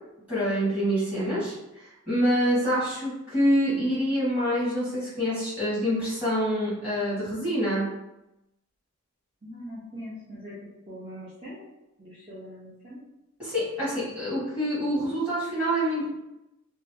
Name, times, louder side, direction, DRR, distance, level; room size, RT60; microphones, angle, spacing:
voice 1, 0.3-1.5 1.8-7.9 13.4-16.1, equal, 5° right, -11 dB, 1.4 m, -26 dB
voice 2, 9.4-10.6 10.9-11.7 12.0-13.1, equal, 25° right, -10 dB, 0.6 m, -42 dB
3.1 x 2.2 x 2.7 m, 0.93 s
head